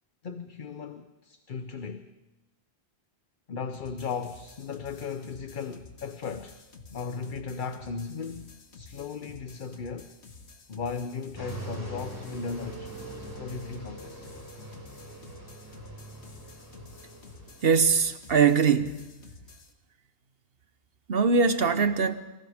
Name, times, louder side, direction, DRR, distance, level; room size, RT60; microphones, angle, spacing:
voice 1, 0.2-2.1 3.5-6.6 6.9-10.1 10.7-12.9 13.4-14.3, left 5 dB, 50° left, 0.9 m, -36 dB
sound 1, 3.7-19.7, left 4 dB, 85° left, 1.8 m, -51 dB
sound 2, 11.4-17.7, right 1 dB, 20° right, 4.6 m, -42 dB
voice 2, 17.6-19.0 21.1-22.2, right 5 dB, 60° right, 1.1 m, -22 dB
29.5 x 24.5 x 3.6 m
omnidirectional pair, 1.1 m